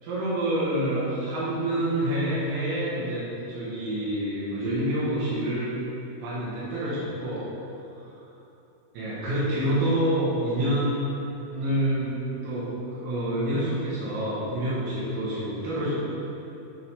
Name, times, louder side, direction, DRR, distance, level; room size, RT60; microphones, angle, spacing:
voice 1, 0.0-5.7 6.2-7.5 8.0-8.1 8.9-11.1 11.5-12.2 12.4-12.7 12.9-15.9, right 1 dB, 80° right, -11 dB, 4.2 m, -27 dB
10.5 x 3.8 x 4.8 m, 2.9 s
omnidirectional pair, 6.0 m